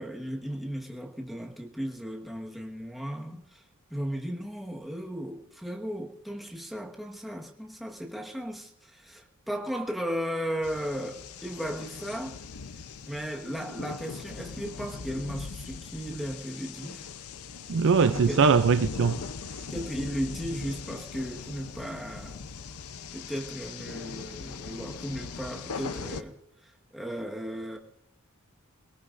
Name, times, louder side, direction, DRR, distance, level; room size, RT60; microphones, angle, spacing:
voice 1, 0.0-3.6 3.9-12.4 13.0-17.1 18.3-18.5 19.7-22.6 23.1-27.8, equal, ahead, 1.5 m, -36 dB
sound 1, 10.6-26.2, left 5 dB, 85° left, 0.7 m, -40 dB
voice 2, 17.7-19.2, right 5 dB, 60° right, 0.5 m, -21 dB
28.5 x 18.0 x 2.6 m
head